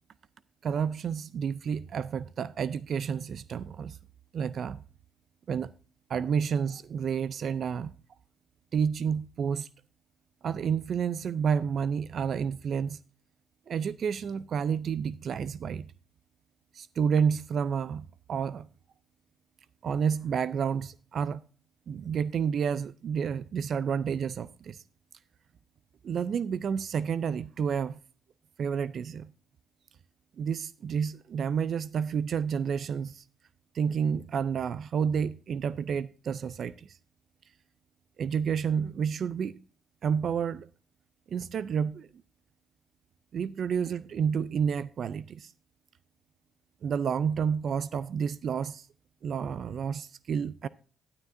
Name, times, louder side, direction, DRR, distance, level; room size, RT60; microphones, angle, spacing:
voice 1, 0.6-4.0 4.3-4.8 5.5-5.7 6.1-7.9 8.7-9.7 10.4-13.0 13.7-15.9 16.7-18.7 19.8-21.4 21.9-24.8 26.0-28.0 28.6-29.3 30.4-33.2 33.7-37.0 38.2-39.6 40.0-40.7 41.3-42.1 43.3-45.5 46.8-48.9 49.2-50.7, right 7 dB, 60° right, 0.4 m, -30 dB
11.5 x 9.8 x 2.6 m
cardioid pair, 90°, 0 cm